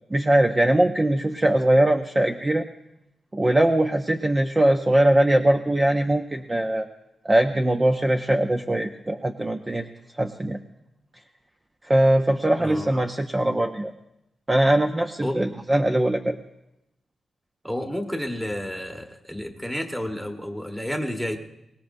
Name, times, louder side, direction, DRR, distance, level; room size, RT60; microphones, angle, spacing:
voice 1, 0.1-2.7 3.3-6.9 7.2-9.9 10.1-10.6 11.8-13.9 14.5-16.4, right 1 dB, 20° right, 5 dB, 0.6 m, -21 dB
voice 2, 12.6-12.9 15.2-15.5 17.6-21.4, equal, 5° right, 4 dB, 1.3 m, -30 dB
23.0 x 19.0 x 2.6 m, 0.87 s
wide cardioid pair, 135°, 0 cm